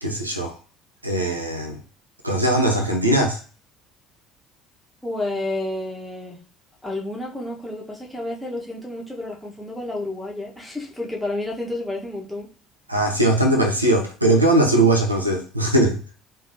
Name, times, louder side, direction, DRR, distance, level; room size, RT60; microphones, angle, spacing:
voice 1, 0.0-0.5 1.0-1.8 2.2-3.4 12.9-16.0, right 1 dB, 90° right, 2 dB, 0.5 m, -20 dB
voice 2, 5.0-6.4 6.8-12.5, left 2 dB, ahead, -2 dB, 1.3 m, -30 dB
3.5 x 3.2 x 2.7 m, 0.38 s
figure-of-eight pair, 60°, 0 cm